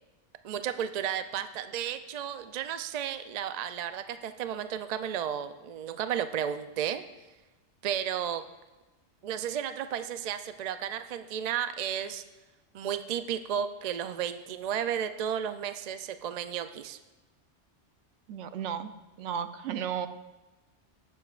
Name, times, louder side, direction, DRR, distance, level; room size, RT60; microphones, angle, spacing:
voice 1, 0.4-7.0 7.8-8.4 9.2-12.2 12.7-17.0, right 9 dB, 55° right, 10 dB, 0.4 m, -33 dB
voice 2, 18.3-18.9 19.2-20.1, right 8 dB, 80° right, 10 dB, 0.9 m, -34 dB
17.0 x 6.9 x 2.4 m, 1.1 s
omnidirectional pair, 1.2 m